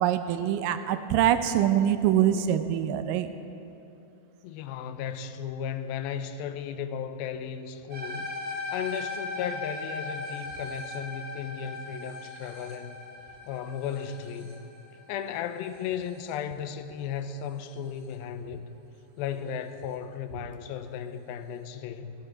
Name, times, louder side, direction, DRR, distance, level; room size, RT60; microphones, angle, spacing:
voice 1, 0.0-3.3, right 10 dB, 80° right, 9 dB, 2.1 m, -24 dB
voice 2, 4.4-8.3 8.7-13.0 13.5-14.6 15.1-18.7 19.2-22.1, left 8 dB, 85° left, 10 dB, 2.4 m, -35 dB
sound 1, 7.9-16.3, left 2 dB, 40° right, 1.2 m, -38 dB
14.5 x 12.5 x 4.5 m, 2.7 s
omnidirectional pair, 4.3 m